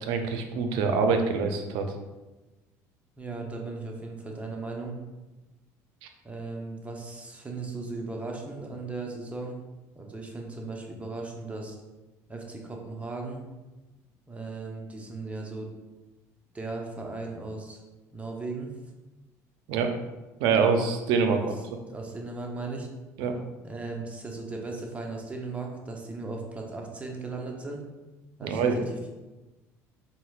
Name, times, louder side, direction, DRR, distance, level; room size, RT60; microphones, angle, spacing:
voice 1, 0.0-1.9 6.0-6.1 19.7-19.9 20.4-21.4 23.2-23.4 28.4-28.9, right 5 dB, 75° right, 5 dB, 0.4 m, -25 dB
voice 2, 3.2-5.0 6.2-9.6 9.9-11.8 12.3-13.4 14.3-15.7 16.5-17.8 18.1-18.7 21.4-21.5 21.9-22.9 23.6-27.8 28.4-28.6, right 3 dB, 15° right, 0 dB, 0.6 m, -37 dB
4.1 x 2.0 x 2.3 m, 1.1 s
supercardioid pair, 80°, 8 cm